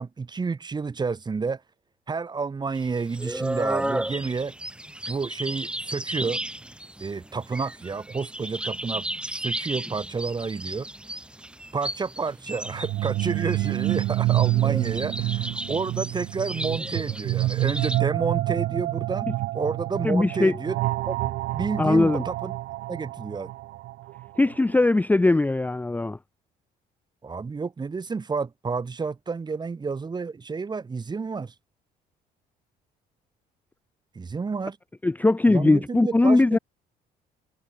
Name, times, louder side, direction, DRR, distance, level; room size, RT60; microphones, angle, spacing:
voice 1, 0.0-1.6 2.1-4.5 5.1-6.4 7.0-9.1 9.4-10.9 11.7-20.8 21.1-22.5 22.9-23.5 27.2-31.5 34.1-34.8 35.5-36.6, right 4 dB, 25° right, 2.5 m, -30 dB
sound 1, 2.8-18.0, right 1 dB, 5° right, 4.7 m, -34 dB
sound 2, 12.7-24.5, right 17 dB, 80° right, 2.7 m, -28 dB
voice 2, 20.0-20.6 21.8-22.2 24.4-26.2 35.0-36.6, left 2 dB, 10° left, 0.7 m, -20 dB
cardioid pair, 110°, 17 cm